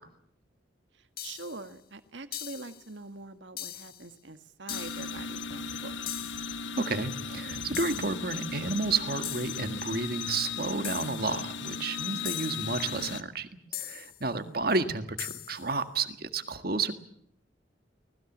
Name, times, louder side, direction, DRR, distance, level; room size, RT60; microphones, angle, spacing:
sound 1, 1.2-1.7 2.3-2.8 3.6-4.1 4.7-5.2 6.1-6.6 7.7-8.3 9.2-9.7 10.8-11.3 12.2-12.8 13.7-14.2 15.2-15.7, left 12 dB, 50° left, 1.1 m, -40 dB
voice 1, 1.2-6.0 14.2-14.6, right 3 dB, 70° right, 9 dB, 1.7 m, -44 dB
sound 2, 4.7-13.2, left 5 dB, 75° left, 1.3 m, -37 dB
voice 2, 6.8-16.9, right 3 dB, 50° right, 9 dB, 1.7 m, -31 dB
25.0 x 19.5 x 7.4 m, 0.71 s
head